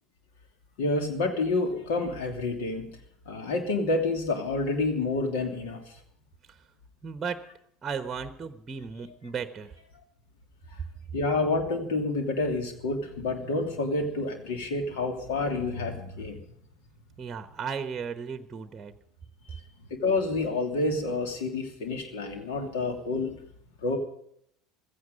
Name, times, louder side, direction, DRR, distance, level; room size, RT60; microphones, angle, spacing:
voice 1, 0.8-2.9 3.3-5.8 11.1-16.4 19.5-19.6 19.9-23.3 23.8-24.0, left 3 dB, 65° left, 4 dB, 2.9 m, -28 dB
voice 2, 7.0-7.4 7.8-9.7 17.2-18.9, right 6 dB, 25° right, 10 dB, 1.1 m, -35 dB
16.0 x 15.0 x 5.3 m, 0.70 s
figure-of-eight pair, 75°, 0 cm